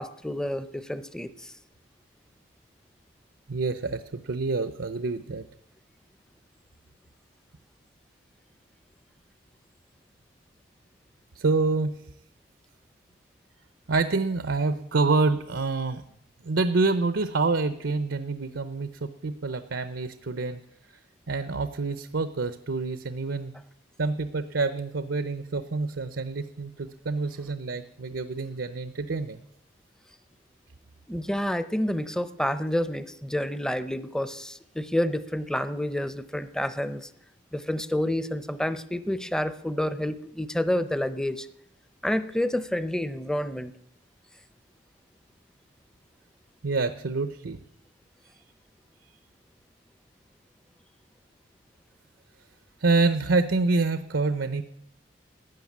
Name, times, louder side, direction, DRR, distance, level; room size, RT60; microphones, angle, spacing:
voice 1, 0.0-1.5 31.1-37.1 37.5-41.5 42.0-43.8, left 1 dB, 5° left, 13 dB, 0.6 m, -29 dB
voice 2, 3.5-5.4 11.3-12.0 13.9-16.0 16.4-20.6 21.3-23.5 24.0-29.4 46.6-47.6 52.8-54.6, right 3 dB, 85° right, 12 dB, 0.7 m, -27 dB
13.5 x 9.2 x 9.4 m, 0.77 s
head